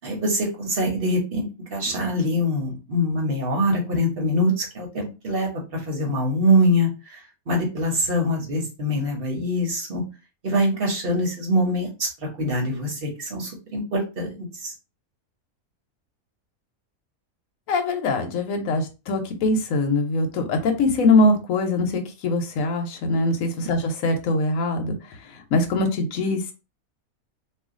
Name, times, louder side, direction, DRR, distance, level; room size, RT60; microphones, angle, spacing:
voice 1, 0.0-1.4 1.7-10.0 10.4-12.1 12.4-14.7, equal, 45° right, 0 dB, 1.1 m, -24 dB
voice 2, 17.7-25.0 25.2-26.5, left 2 dB, 75° left, 4 dB, 1.1 m, -22 dB
2.7 x 2.5 x 3.6 m, 0.30 s
omnidirectional pair, 1.5 m